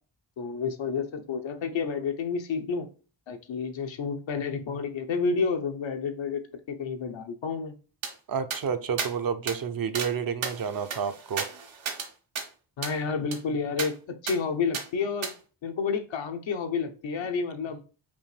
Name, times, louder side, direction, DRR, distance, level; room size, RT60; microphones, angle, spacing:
voice 1, 0.4-2.9 3.3-6.4 6.7-7.8 12.8-14.0 14.2-15.3 15.6-17.8, left 5 dB, 75° left, 0.9 m, -30 dB
sound 1, 8.0-8.1 8.5-8.6 9.0-9.1 9.5-9.6 9.9-10.1 10.4-12.1 12.3-12.5 12.8-13.0 13.3-13.4 13.8-13.9 14.3-14.4 14.7-14.8 15.2-15.3, right 6 dB, 80° right, 1.0 m, -33 dB
voice 2, 8.3-11.5, right 7 dB, 50° right, 0.6 m, -30 dB
5.3 x 2.6 x 3.3 m
cardioid pair, 75°, 46 cm